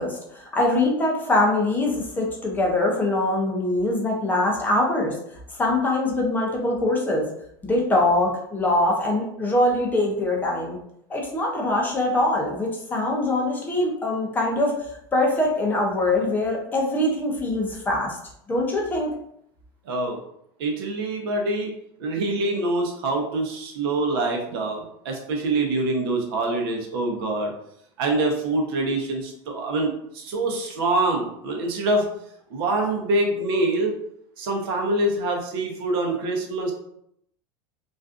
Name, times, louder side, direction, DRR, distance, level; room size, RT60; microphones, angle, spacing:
voice 1, 0.0-5.2 5.5-7.2 7.6-10.8 11.1-14.8 15.1-18.2 18.5-19.1, left 1 dB, 15° left, -1 dB, 0.5 m, -23 dB
voice 2, 19.8-20.2 20.6-21.7 22.0-27.5 28.0-32.1 32.5-33.9 34.4-36.7, right 2 dB, 75° right, 1 dB, 0.7 m, -25 dB
2.5 x 2.3 x 2.4 m, 0.73 s
supercardioid pair, 145°, 13 cm